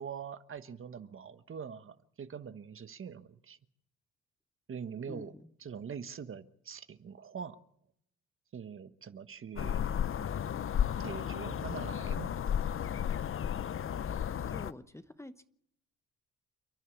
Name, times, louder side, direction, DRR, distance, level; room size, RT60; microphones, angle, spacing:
voice 1, 0.0-3.6 4.7-5.3 5.6-7.6 8.5-9.9 11.0-12.3, right 7 dB, 45° right, 11 dB, 1.3 m, -43 dB
voice 2, 5.0-5.5 14.4-15.4, left 1 dB, 10° left, 11 dB, 1.0 m, -48 dB
sound 1, 9.6-14.7, left 9 dB, 45° left, 0.8 m, -33 dB
29.0 x 11.0 x 8.6 m, 0.74 s
cardioid pair, 90°, 30 cm